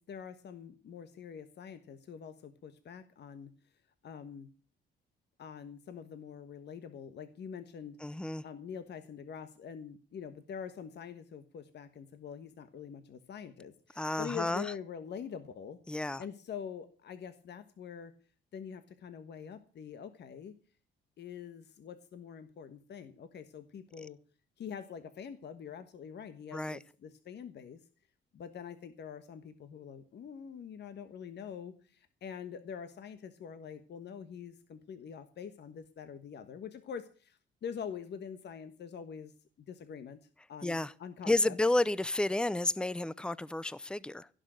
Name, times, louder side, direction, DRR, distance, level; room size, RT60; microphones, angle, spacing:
voice 1, 0.0-3.5 4.0-4.5 5.4-15.8 16.2-18.1 18.5-20.5 21.2-24.2 24.6-27.8 28.3-39.3 39.7-40.2 40.5-41.5, left 7 dB, 60° left, 1.3 m, -45 dB
voice 2, 8.0-8.4 14.0-14.7 15.9-16.2 24.0-24.1 26.5-26.8 40.6-40.9 41.2-44.3, left 2 dB, 5° left, 0.6 m, -31 dB
16.5 x 6.4 x 9.0 m
cardioid pair, 90°, 20 cm